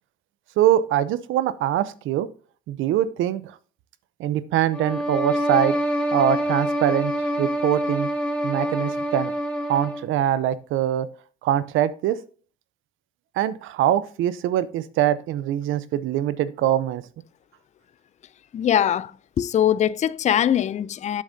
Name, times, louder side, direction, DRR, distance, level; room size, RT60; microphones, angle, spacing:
voice 1, 0.6-2.3 2.7-3.5 4.2-5.8 6.1-7.1 7.4-8.1 8.4-9.3 9.7-11.1 11.4-12.2 13.4-17.0, right 11 dB, 90° right, 0.6 m, -23 dB
sound 1, 4.7-10.1, equal, 5° left, 1.9 m, -26 dB
voice 2, 18.5-21.2, left 10 dB, 35° left, 0.4 m, -22 dB
8.4 x 6.5 x 2.7 m
cardioid pair, 90°, 20 cm